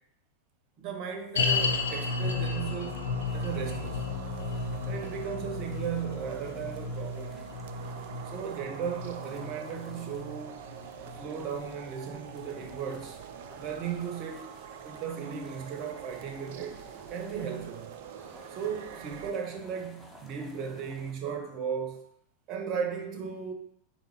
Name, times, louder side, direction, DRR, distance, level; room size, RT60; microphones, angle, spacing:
voice 1, 0.8-3.0 3.3-4.1 4.9-7.5 8.3-10.7 11.1-13.2 13.6-14.5 14.8-17.9 18.5-22.1 22.5-23.5, right 7 dB, 40° right, 4 dB, 0.7 m, -36 dB
sound 1, 1.3-12.6 12.9-13.0 13.6-13.7, left 4 dB, 65° left, 0.5 m, -34 dB
sound 2, 1.5-19.3, right 8 dB, 55° right, 0.3 m, -45 dB
sound 3, 3.2-21.1, equal, ahead, 0.7 m, -54 dB
3.9 x 2.9 x 4.3 m, 0.70 s
figure-of-eight pair, 90°, 0 cm